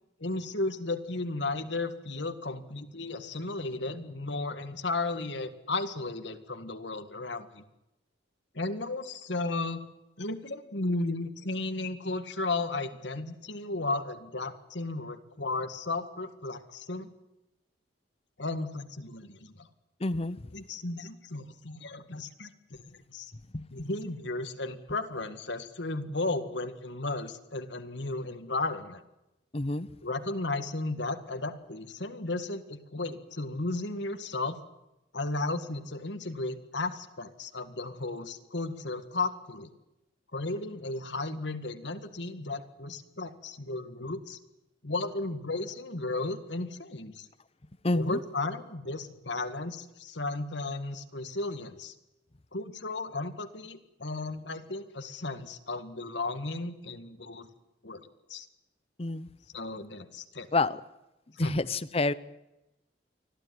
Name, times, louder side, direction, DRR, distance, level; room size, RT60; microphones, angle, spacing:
voice 1, 0.2-7.6 8.5-9.8 10.2-17.1 18.4-19.7 20.5-23.3 23.7-29.0 30.0-34.6 35.1-39.7 40.3-44.4 44.8-47.3 47.9-51.9 52.5-57.5 57.8-58.5 59.5-60.5 61.3-61.6, left 2 dB, 70° left, 9 dB, 1.9 m, -34 dB
voice 2, 20.0-20.5 23.5-23.6 29.5-29.9 47.8-48.2 59.0-59.3 60.5-60.8 61.4-62.1, left 2 dB, 30° left, 16 dB, 0.8 m, -28 dB
25.0 x 15.5 x 9.6 m, 0.93 s
head